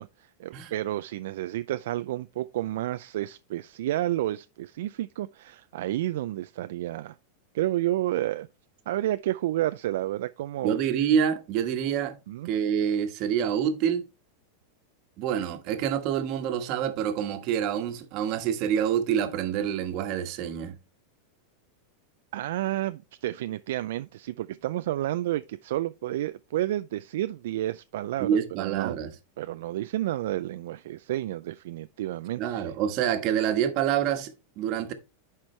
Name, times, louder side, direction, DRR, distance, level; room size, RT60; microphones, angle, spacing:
voice 1, 0.0-7.2 7.5-8.5 8.9-10.8 12.3-12.5 22.3-29.0 29.4-32.7, right 14 dB, 75° right, 0.3 m, -30 dB
voice 2, 10.6-12.2 12.4-14.0 15.2-20.8 28.2-29.1 32.4-34.9, right 9 dB, 50° right, 1.3 m, -27 dB
10.5 x 4.4 x 3.2 m
hypercardioid pair, 110°, 0 cm